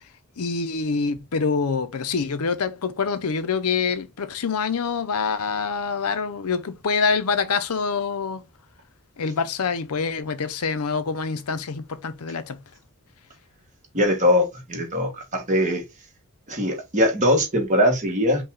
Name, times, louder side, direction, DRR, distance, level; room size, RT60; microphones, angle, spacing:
voice 1, 0.4-8.4 9.2-12.6, left 5 dB, 85° left, 0.6 m, -26 dB
voice 2, 13.9-15.8 16.5-18.4, left 1 dB, 35° right, 1.4 m, -21 dB
5.4 x 2.3 x 3.6 m
head